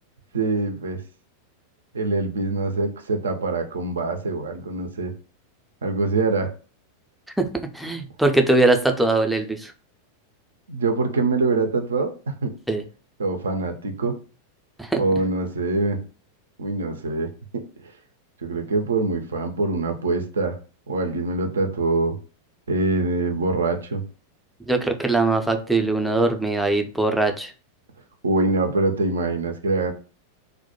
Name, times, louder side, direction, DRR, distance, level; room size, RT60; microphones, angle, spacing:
voice 1, 0.3-1.0 1.9-5.1 5.8-6.5 10.7-12.5 13.2-14.2 15.0-16.0 16.6-17.3 18.4-20.6 20.9-22.1 22.7-24.0 28.2-29.9, right 3 dB, 70° right, 6 dB, 0.4 m, -24 dB
voice 2, 7.7-9.7 12.7-12.8 14.8-15.0 24.7-27.5, right 2 dB, ahead, 4 dB, 0.4 m, -21 dB
2.1 x 2.1 x 2.8 m, 0.36 s
figure-of-eight pair, 90°, 0 cm